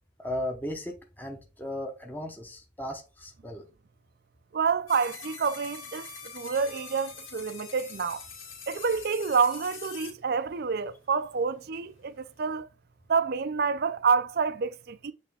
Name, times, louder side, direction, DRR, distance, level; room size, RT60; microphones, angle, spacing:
voice 1, 0.2-3.6, left 1 dB, 10° left, 0.8 m, -36 dB
voice 2, 4.5-6.1 6.3-8.2 8.7-12.7 13.1-15.1, right 5 dB, 50° right, 0.4 m, -28 dB
sound 1, 4.9-10.1, left 6 dB, 75° left, 2.3 m, -44 dB
8.4 x 3.3 x 3.4 m
head